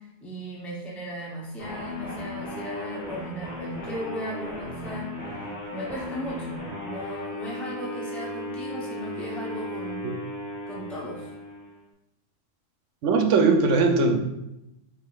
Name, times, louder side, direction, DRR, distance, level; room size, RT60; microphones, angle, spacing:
voice 1, 0.0-10.1 10.7-11.3, equal, ahead, -4 dB, 0.3 m, -37 dB
sound 1, 1.6-11.8, left 1 dB, 65° left, 1.7 m, -36 dB
voice 2, 13.0-14.2, right 4 dB, 75° right, 4 dB, 0.9 m, -19 dB
4.9 x 3.8 x 2.3 m, 0.90 s
omnidirectional pair, 1.3 m